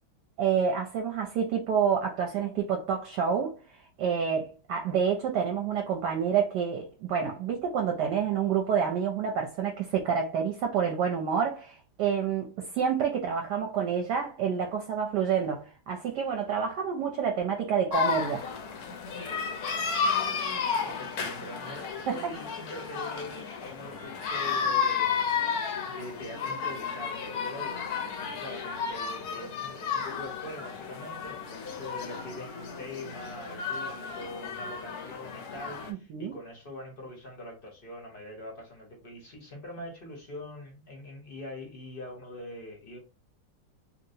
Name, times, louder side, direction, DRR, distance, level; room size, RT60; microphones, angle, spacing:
voice 1, 0.4-3.6 4.0-18.4 22.1-22.2 36.1-36.4, right 7 dB, 70° right, 1.1 m, -28 dB
sound 1, 17.9-35.9, left 6 dB, 65° left, 1.0 m, -32 dB
voice 2, 20.7-27.9 28.3-43.0, left 1 dB, 40° left, 0.8 m, -43 dB
3.0 x 2.8 x 2.7 m
omnidirectional pair, 2.1 m